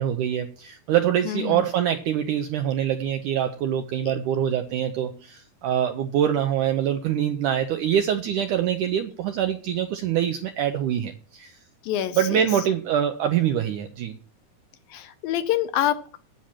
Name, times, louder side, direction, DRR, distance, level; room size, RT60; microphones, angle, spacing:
voice 1, 0.0-11.5 12.1-14.1, right 10 dB, 80° right, 7 dB, 1.8 m, -24 dB
voice 2, 1.3-1.6 11.8-12.4 14.9-16.2, left 12 dB, 75° left, 11 dB, 2.3 m, -26 dB
10.5 x 8.7 x 5.9 m, 0.41 s
omnidirectional pair, 4.5 m